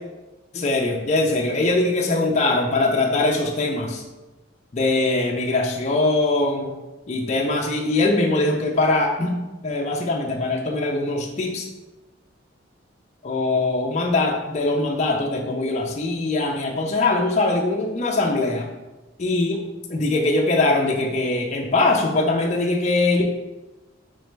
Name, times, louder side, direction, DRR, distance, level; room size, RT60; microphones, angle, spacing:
voice 1, 0.5-4.0 4.7-6.7 7.1-9.4 9.6-11.6 13.2-18.7 19.2-19.6 19.9-23.2, left 2 dB, 35° left, 0 dB, 0.4 m, -22 dB
4.1 x 3.9 x 3.3 m, 1.1 s
head